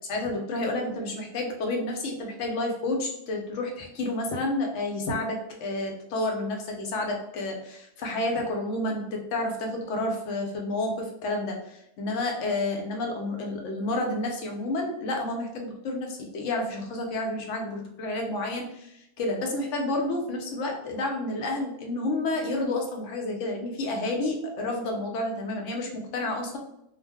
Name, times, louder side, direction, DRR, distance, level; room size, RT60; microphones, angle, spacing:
voice 1, 0.1-26.6, left 2 dB, 75° left, 2 dB, 0.9 m, -30 dB
2.4 x 2.0 x 3.3 m, 0.80 s
omnidirectional pair, 1.3 m